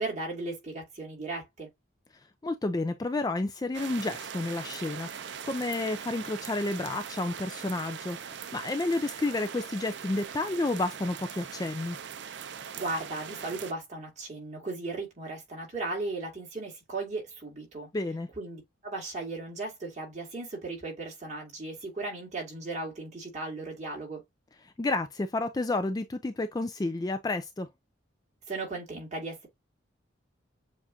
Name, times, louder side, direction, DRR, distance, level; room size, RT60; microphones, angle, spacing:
voice 1, 0.0-1.7 12.7-17.9 18.4-24.2 28.5-29.5, right 2 dB, 35° right, 2.3 m, -36 dB
voice 2, 2.4-12.0 17.9-18.3 24.6-27.7, left 2 dB, 20° left, 0.3 m, -31 dB
sound 1, 3.7-13.7, right 7 dB, 60° right, 0.5 m, -41 dB
7.3 x 2.5 x 2.8 m
head